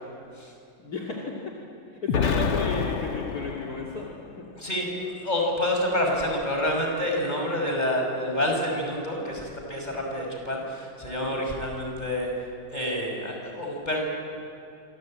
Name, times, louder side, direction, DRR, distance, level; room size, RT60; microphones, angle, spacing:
voice 1, 0.8-1.3 1.9-4.1 4.3-4.4 7.3-7.4 9.8-10.0 11.2-11.4, left 3 dB, 50° left, -2 dB, 3.0 m, -34 dB
Explosion, 2.1-4.2, left 6 dB, 80° left, 1.9 m, -28 dB
voice 2, 4.6-12.3 12.7-14.1, left 1 dB, 20° left, 1 dB, 5.8 m, -28 dB
26.5 x 26.0 x 8.8 m, 2.6 s
omnidirectional pair, 2.2 m